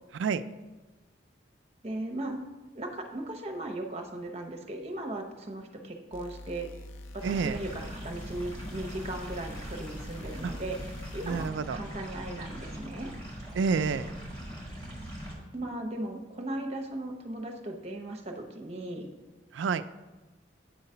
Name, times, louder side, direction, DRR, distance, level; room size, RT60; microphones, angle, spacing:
voice 1, 1.8-2.4 2.7-6.7 7.1-10.8 11.1-13.1 15.5-19.1, right 1 dB, 35° right, 3 dB, 0.8 m, -37 dB
sound 1, 6.1-11.5, left 1 dB, 85° left, 0.5 m, -45 dB
sound 2, 7.2-15.3, equal, 25° left, 1.7 m, -41 dB
voice 2, 7.2-7.6 10.4-10.5 11.2-11.8 13.5-14.1 19.5-19.9, right 5 dB, 75° right, 12 dB, 0.3 m, -29 dB
9.2 x 3.9 x 5.6 m, 1.2 s
head